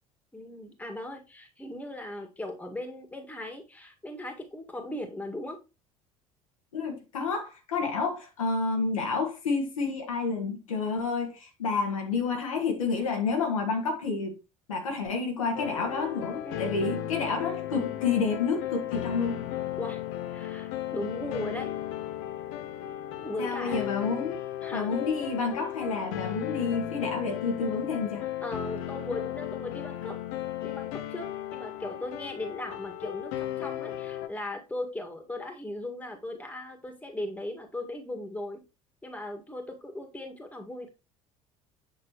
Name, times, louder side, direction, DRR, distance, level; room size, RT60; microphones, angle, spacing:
voice 1, 0.3-5.6 16.4-16.7 19.8-20.0 20.3-21.7 23.2-23.9 24.6-24.9 28.4-30.2 30.6-38.6 39.0-40.9, left 1 dB, 10° left, 1.9 m, -38 dB
voice 2, 6.7-14.4 14.7-19.5 23.4-24.4 24.7-28.2, left 4 dB, 75° left, 1.6 m, -29 dB
sound 1, 15.5-34.3, left 12 dB, 55° left, 1.0 m, -35 dB
8.1 x 6.0 x 3.1 m
figure-of-eight pair, 60°, 18 cm